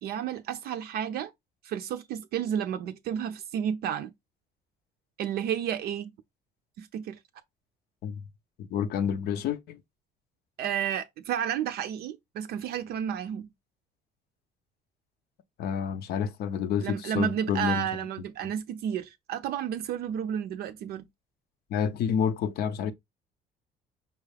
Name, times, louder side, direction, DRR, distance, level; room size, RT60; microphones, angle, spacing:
voice 1, 0.0-1.3 1.6-4.1 5.2-6.1 6.8-7.2 10.6-13.5 16.8-21.1, right 9 dB, 70° right, 0.4 m, -31 dB
voice 2, 8.6-9.8 15.6-17.9 21.7-22.9, left 8 dB, 70° left, 0.6 m, -29 dB
5.3 x 2.3 x 3.2 m
cardioid pair, 110°, 17 cm